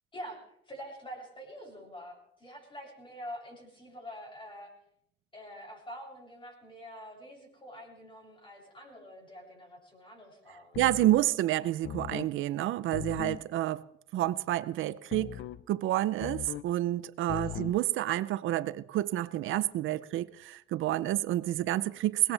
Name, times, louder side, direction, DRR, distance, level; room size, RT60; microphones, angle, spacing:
voice 1, 0.1-4.7 5.3-10.8 17.3-17.6, equal, 25° left, 7.5 m, -46 dB
sound 1, 10.7-11.3 11.8-12.3 12.9-13.5 15.1-15.6 16.2-16.7 17.3-17.8, left 12 dB, 70° left, 0.6 m, -39 dB
voice 2, 10.8-13.8 14.1-15.3 15.7-22.3, right 14 dB, 85° right, 0.6 m, -29 dB
21.5 x 18.5 x 3.4 m
cardioid pair, 90°, 20 cm